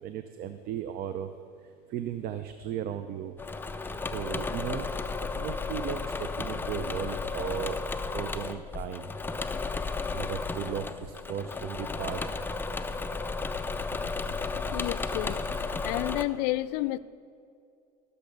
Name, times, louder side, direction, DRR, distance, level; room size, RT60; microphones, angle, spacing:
voice 1, 0.0-1.3 1.9-3.3 4.1-4.9 5.3-7.8 8.1-9.1 10.1-12.3, right 10 dB, 45° right, 10 dB, 0.5 m, -36 dB
Engine / Mechanisms, 3.4-16.2, left 4 dB, 10° left, 0.4 m, -33 dB
voice 2, 14.7-15.4 15.8-17.0, left 17 dB, 75° left, 17 dB, 0.4 m, -30 dB
13.5 x 6.8 x 5.3 m, 2.3 s
supercardioid pair, 110°, 21 cm